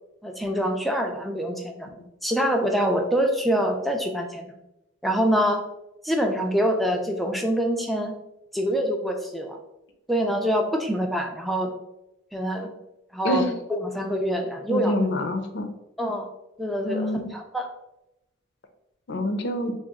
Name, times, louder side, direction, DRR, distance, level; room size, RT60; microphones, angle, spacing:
voice 1, 0.2-1.9 2.2-4.5 5.0-5.6 6.0-8.1 8.5-9.6 10.1-11.7 12.3-12.7 13.1-13.4 13.7-14.9 16.0-16.3 16.6-17.7, equal, ahead, 2 dB, 0.4 m, -25 dB
voice 2, 14.7-15.7 16.8-17.3 19.1-19.7, left 1 dB, 60° left, 6 dB, 0.5 m, -26 dB
3.9 x 2.0 x 3.5 m, 0.88 s
head